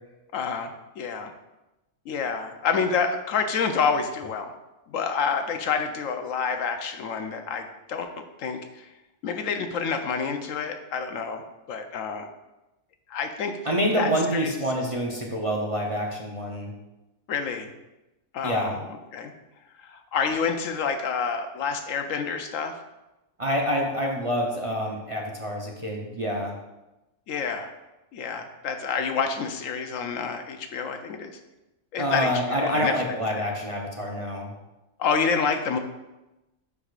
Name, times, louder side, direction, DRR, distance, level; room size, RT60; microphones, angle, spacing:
voice 1, 0.3-1.3 2.1-4.5 4.9-8.1 8.4-8.9 9.2-11.4 11.7-12.3 13.1-13.6 13.9-14.5 17.3-17.7 18.3-19.3 19.8-22.7 27.3-27.7 28.1-31.4 31.9-33.0 33.3-33.4 35.0-35.8, left 5 dB, 80° left, 6 dB, 1.1 m, -28 dB
voice 2, 13.6-16.7 18.4-18.8 23.4-26.5 32.0-34.5, equal, 30° right, -1 dB, 0.7 m, -27 dB
10.0 x 4.8 x 2.5 m, 0.99 s
omnidirectional pair, 1.3 m